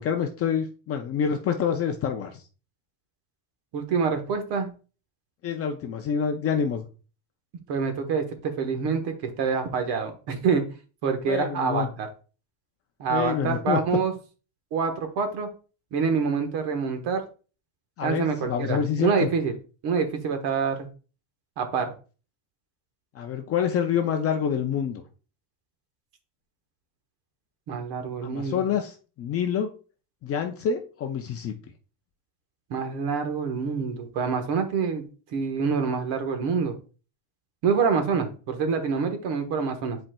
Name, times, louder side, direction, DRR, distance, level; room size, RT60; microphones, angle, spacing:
voice 1, 0.0-2.4 5.4-6.8 11.3-11.9 13.1-13.8 18.0-19.3 23.1-25.0 28.2-29.7 30.2-31.5, left 7 dB, 35° left, 4 dB, 0.4 m, -27 dB
voice 2, 3.7-4.7 7.7-10.7 11.0-12.1 13.0-14.1 14.7-15.5 15.9-17.2 18.0-19.5 19.8-20.9 21.6-21.9 27.7-28.7 32.7-35.1 35.3-36.8 37.6-40.0, right 5 dB, 55° right, 7 dB, 1.3 m, -26 dB
10.0 x 4.3 x 2.2 m, 0.36 s
cardioid pair, 175°, 48 cm